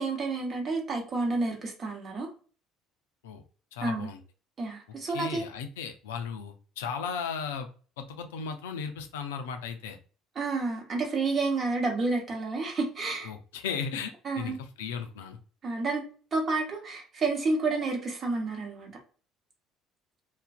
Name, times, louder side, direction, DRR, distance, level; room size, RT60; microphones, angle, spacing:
voice 1, 0.0-2.3 3.8-4.1 4.6-5.5 10.4-13.3 14.2-14.6 15.6-16.0 16.3-18.9, right 3 dB, 40° right, 1 dB, 0.9 m, -30 dB
voice 2, 3.7-4.2 5.1-7.7 8.0-10.0 13.2-15.4, left 6 dB, 75° left, 6 dB, 0.3 m, -36 dB
2.4 x 2.1 x 2.4 m, 0.38 s
figure-of-eight pair, 60°, 0 cm